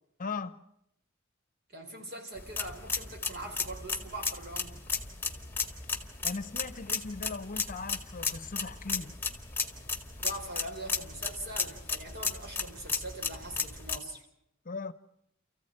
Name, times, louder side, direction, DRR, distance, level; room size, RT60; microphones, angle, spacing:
voice 1, 0.2-0.6 6.2-9.1 14.6-14.9, left 4 dB, 40° left, 0.9 m, -38 dB
voice 2, 1.7-4.8 10.2-14.2, right 1 dB, 55° right, 4.2 m, -42 dB
sound 1, 2.4-14.0, left 5 dB, 10° left, 2.0 m, -35 dB
29.5 x 15.0 x 8.9 m
head